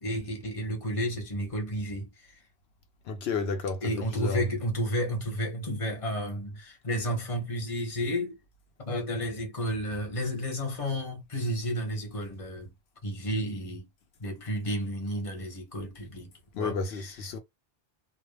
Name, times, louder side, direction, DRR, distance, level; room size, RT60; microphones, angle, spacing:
voice 1, 0.0-2.1 3.8-8.4 8.8-12.7 13.0-13.9 14.2-16.3 16.6-17.1, equal, 35° left, 1.0 m, -32 dB
voice 2, 3.1-4.4 16.5-17.4, left 4 dB, 85° left, 0.8 m, -32 dB
2.2 x 2.1 x 3.2 m
omnidirectional pair, 1.0 m